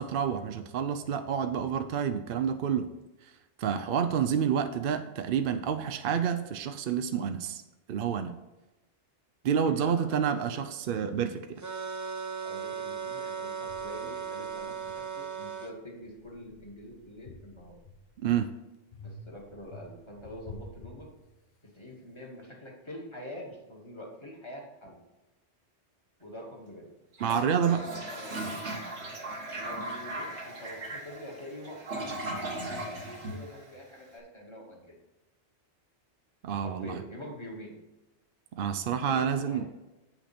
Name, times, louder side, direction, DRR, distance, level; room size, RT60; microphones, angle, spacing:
voice 1, 0.0-2.9 3.6-7.6 7.9-8.4 9.4-11.6 18.2-18.5 27.2-27.9 36.4-37.0 38.6-39.7, right 7 dB, 60° right, 9 dB, 0.7 m, -29 dB
voice 2, 9.6-10.6 12.4-17.8 19.0-21.1 21.7-25.0 26.2-26.9 27.9-28.5 29.5-35.0 36.6-37.8 38.9-39.7, equal, 25° left, -2 dB, 1.9 m, -45 dB
sound 1, 11.6-15.7, right 6 dB, 20° right, 0.5 m, -37 dB
sound 2, 12.9-13.0 13.7-15.5 16.0-18.3 18.9-21.7, left 2 dB, 60° left, 1.2 m, -50 dB
Toilet flush, 27.1-34.1, right 1 dB, 75° right, 1.6 m, -38 dB
8.4 x 5.9 x 4.2 m, 1.0 s
omnidirectional pair, 1.2 m